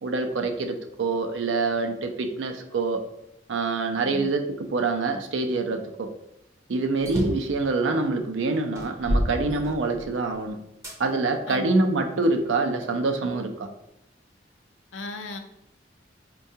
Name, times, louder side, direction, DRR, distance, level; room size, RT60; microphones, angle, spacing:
voice 1, 0.0-3.0 3.5-4.4 4.7-6.1 6.7-10.6 11.0-13.7, right 3 dB, 90° right, 5 dB, 0.5 m, -25 dB
sound 1, 7.0-7.5 8.2-8.3 8.7-10.2 10.8-11.0 11.7-12.8, equal, 15° right, 0.5 m, -29 dB
voice 2, 14.9-15.4, left 2 dB, 85° left, 6 dB, 0.5 m, -36 dB
4.5 x 2.2 x 2.7 m, 0.79 s
head